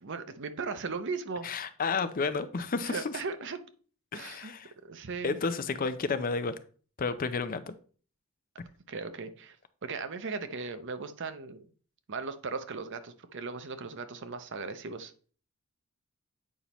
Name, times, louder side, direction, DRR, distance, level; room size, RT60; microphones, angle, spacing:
voice 1, 0.0-1.5 2.8-3.6 4.1-4.5 4.8-5.4 8.9-9.6 9.8-11.7 12.1-15.1, right 4 dB, 55° right, 10 dB, 0.7 m, -37 dB
voice 2, 1.4-3.2 4.1-4.7 5.2-6.6 7.0-7.7, left 4 dB, 40° left, 12 dB, 0.5 m, -31 dB
8.5 x 5.5 x 3.0 m, 0.41 s
head